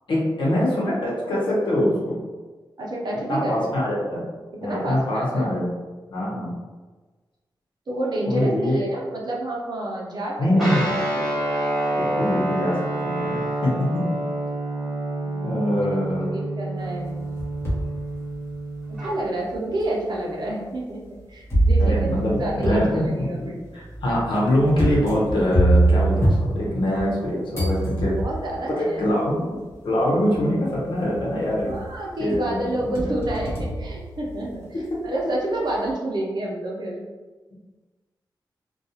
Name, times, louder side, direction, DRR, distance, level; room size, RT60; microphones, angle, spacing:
voice 1, 0.1-2.2 3.3-4.2 4.6-5.7 6.1-6.5 8.3-8.8 10.4-10.9 11.9-14.0 15.4-16.3 21.8-28.1 28.8-29.6 29.8-31.7 32.2-33.1 34.9-35.0, left 1 dB, 80° left, -5 dB, 0.8 m, -24 dB
voice 2, 2.8-3.5 4.6-5.5 7.9-10.7 11.2-11.3 15.2-15.9 16.3-17.2 18.9-21.0 21.3-23.6 28.2-29.0 31.6-34.6 35.0-37.0, right 1 dB, 60° right, -2 dB, 0.6 m, -29 dB
Guitar, 10.6-19.1, right 1 dB, ahead, 1.1 m, -28 dB
sound 1, 17.0-17.9 18.5-18.6 19.5-19.6 21.5-27.2 27.5-28.6 29.7-29.8 30.3-30.8 31.1-31.9 32.3-34.7, right 1 dB, 30° left, 0.9 m, -24 dB
2.3 x 2.3 x 2.8 m, 1.3 s
wide cardioid pair, 85°, 8 cm